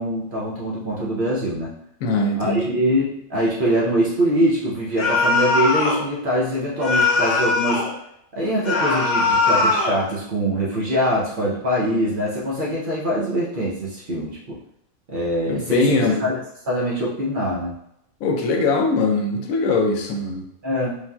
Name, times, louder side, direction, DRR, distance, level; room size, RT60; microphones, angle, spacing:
voice 1, 0.0-1.7 2.4-7.9 8.3-14.6 15.1-17.7 20.6-21.0, equal, 50° right, -5 dB, 0.6 m, -23 dB
voice 2, 2.0-2.7 15.5-16.1 18.2-20.4, left 3 dB, 90° left, 2 dB, 1.0 m, -21 dB
Scream NO - Man, 5.0-6.0 6.8-7.9 8.6-10.0, left 3 dB, 55° left, 0.5 m, -20 dB
3.4 x 2.5 x 2.2 m, 0.75 s
omnidirectional pair, 1.4 m